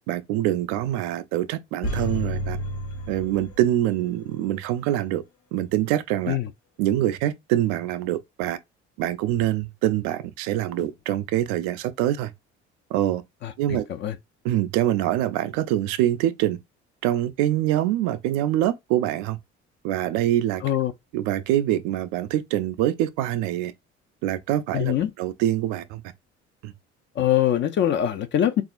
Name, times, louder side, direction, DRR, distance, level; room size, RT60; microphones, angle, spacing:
voice 1, 0.1-2.6 3.1-5.2 5.5-6.4 6.8-8.6 9.0-12.3 12.9-13.2 13.6-13.8 14.4-16.6 17.0-19.4 19.8-20.6 21.1-23.7 24.2-26.0 26.6-26.7, right 13 dB, 55° right, 0.4 m, -24 dB
sound 1, 1.8-4.0 4.3-4.4, equal, 60° left, 0.9 m, -30 dB
voice 2, 13.4-14.2 20.6-20.9 24.7-25.1 27.2-28.6, left 11 dB, 35° left, 0.4 m, -23 dB
3.4 x 2.4 x 2.4 m
figure-of-eight pair, 50°, 34 cm